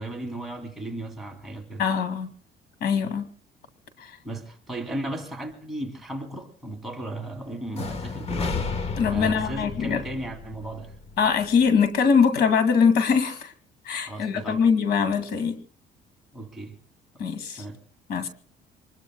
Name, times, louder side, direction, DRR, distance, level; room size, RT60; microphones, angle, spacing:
voice 1, 0.0-1.8 4.2-8.7 9.1-10.9 14.1-14.6 16.3-16.8 17.1-17.2 17.6-17.8, right 1 dB, ahead, 2.9 m, -35 dB
voice 2, 1.8-2.3 2.8-3.3 4.0-4.1 9.0-10.0 11.2-13.5 13.9-15.6 17.2-17.6 18.1-18.3, left 6 dB, 75° left, 2.2 m, -22 dB
sound 1, 7.7-11.7, left 4 dB, 40° left, 1.3 m, -33 dB
26.5 x 21.0 x 2.3 m
cardioid pair, 110°, 17 cm